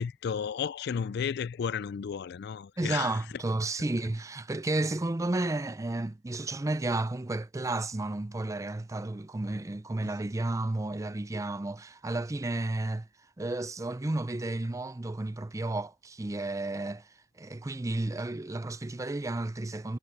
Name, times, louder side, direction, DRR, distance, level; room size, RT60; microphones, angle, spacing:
voice 1, 0.0-3.1, left 7 dB, 60° left, 0.4 m, -33 dB
voice 2, 2.8-13.1 13.4-17.1 17.4-20.0, right 2 dB, 15° right, 0.4 m, -32 dB
head